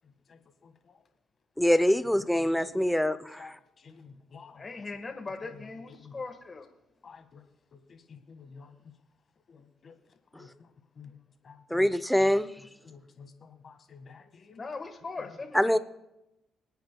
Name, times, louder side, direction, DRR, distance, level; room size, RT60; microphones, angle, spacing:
voice 1, 1.6-3.6 10.3-10.5 11.7-12.5 15.5-15.8, equal, 5° left, 0.6 m, -24 dB
voice 2, 3.8-4.7 6.0-6.2 7.0-7.4 7.9-8.7 9.5-9.9 10.4-10.5 11.0-11.1 11.5-11.8 12.9-14.6, left 5 dB, 50° left, 1.6 m, -50 dB
voice 3, 4.6-6.7 14.6-15.8, left 3 dB, 30° left, 1.5 m, -39 dB
27.0 x 9.0 x 2.3 m
cardioid pair, 90°, 0 cm